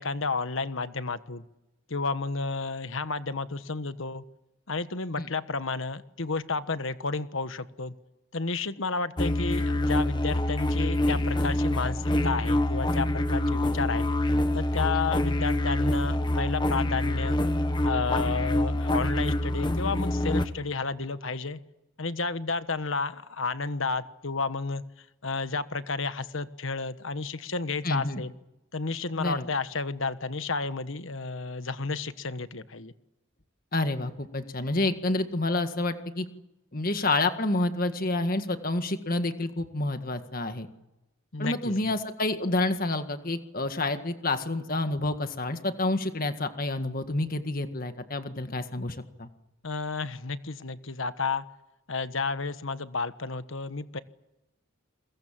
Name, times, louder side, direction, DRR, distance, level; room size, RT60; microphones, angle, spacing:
voice 1, 0.0-1.4 1.9-4.2 4.7-7.9 8.3-14.1 14.5-17.4 17.8-21.6 22.0-24.8 25.2-28.3 28.7-32.9 41.3-41.9 49.6-51.4 51.9-54.0, left 4 dB, 70° left, 12 dB, 1.3 m, -31 dB
sound 1, 9.2-20.5, left 1 dB, 20° left, 1.3 m, -26 dB
voice 2, 27.8-28.2 29.2-29.5 33.7-36.3 36.7-40.7 41.4-49.3, left 2 dB, 40° left, 8 dB, 1.8 m, -29 dB
29.0 x 22.0 x 7.6 m, 0.92 s
head